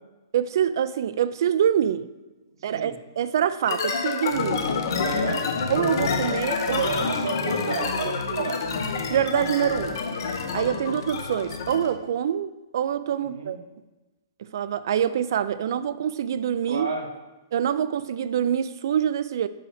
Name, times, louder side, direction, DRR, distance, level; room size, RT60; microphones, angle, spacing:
voice 1, 0.3-2.1 2.6-4.7 5.7-6.9 8.4-8.5 9.1-10.0 10.5-13.6 14.4-16.9 17.5-19.5, right 9 dB, 60° right, 14 dB, 0.3 m, -25 dB
sound 1, 3.7-12.0, left 5 dB, 55° left, 0.8 m, -28 dB
voice 2, 5.0-5.5 6.6-8.6 13.1-13.6 16.7-17.1, right 3 dB, 85° right, 3 dB, 1.2 m, -31 dB
5.5 x 5.3 x 4.9 m, 1.1 s
hypercardioid pair, 155°, 2 cm